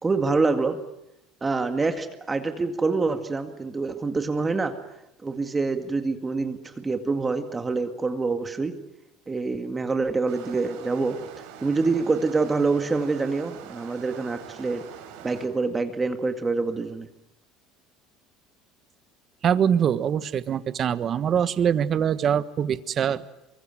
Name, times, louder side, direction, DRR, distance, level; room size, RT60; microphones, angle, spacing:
voice 1, 0.0-0.8 1.4-4.7 5.2-8.7 9.3-11.2 11.6-14.8 15.2-17.1, right 3 dB, 20° right, 7 dB, 2.0 m, -26 dB
WT - river, 10.3-15.5, right 8 dB, 80° right, 6.1 m, -44 dB
voice 2, 19.4-23.3, right 8 dB, 40° right, 13 dB, 1.3 m, -23 dB
24.0 x 24.0 x 9.1 m, 0.86 s
supercardioid pair, 110°, 0 cm